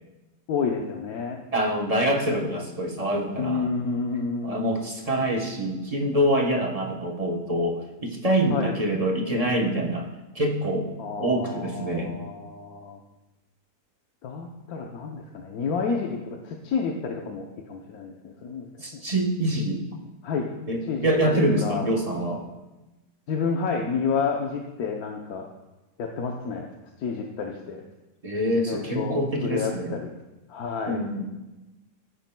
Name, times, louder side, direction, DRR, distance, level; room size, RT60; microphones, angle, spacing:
voice 1, 0.5-1.4 3.4-4.8 8.5-8.8 11.0-13.0 14.2-19.0 20.2-20.5 20.9-21.1 21.6-21.9 23.3-25.4 26.0-26.7 27.0-27.8 28.6-30.1 30.5-31.0, left 5 dB, 70° left, 1 dB, 1.2 m, -30 dB
voice 2, 1.5-3.7 4.4-10.1 10.3-10.9 11.2-12.2 18.8-19.8 20.7-22.4 28.2-30.0 30.9-31.2, right 1 dB, 30° right, 1 dB, 0.9 m, -25 dB
14.5 x 9.2 x 2.2 m, 1.1 s
omnidirectional pair, 1.7 m